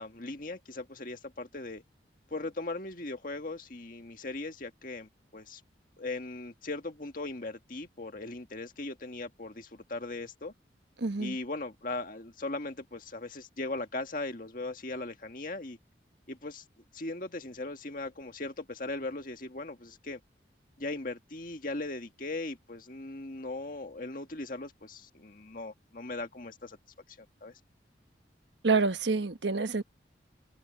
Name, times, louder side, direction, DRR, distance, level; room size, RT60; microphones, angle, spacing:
voice 1, 0.0-1.8 2.3-5.6 6.0-10.5 11.2-15.8 16.3-16.6 16.9-20.2 20.8-26.8 27.1-27.5, left 2 dB, 45° left, 1.8 m, -39 dB
voice 2, 11.0-11.4 28.6-29.8, right 4 dB, 75° right, 1.2 m, -27 dB
head